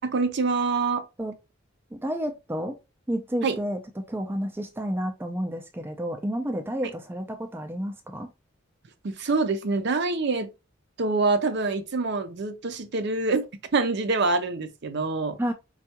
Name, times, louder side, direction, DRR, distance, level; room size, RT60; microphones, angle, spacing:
voice 1, 0.0-1.0 3.4-3.6 9.0-10.5 11.0-13.5 13.7-15.4, right 3 dB, 60° right, 0.6 m, -25 dB
voice 2, 1.9-2.8 3.1-8.3 15.4-15.5, equal, 10° right, 0.4 m, -30 dB
4.4 x 2.3 x 2.8 m
head